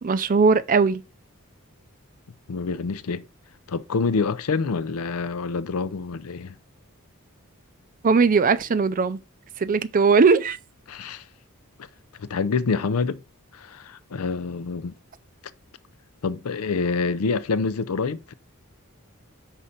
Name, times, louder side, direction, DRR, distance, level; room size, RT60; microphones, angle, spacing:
voice 1, 0.0-1.0 8.0-9.2 9.6-10.6, right 4 dB, 40° right, 0.4 m, -19 dB
voice 2, 2.5-3.2 3.7-6.5 10.9-11.2 12.2-13.2 13.5-15.0 16.2-18.3, left 4 dB, 75° left, 0.5 m, -26 dB
5.6 x 4.1 x 5.0 m
head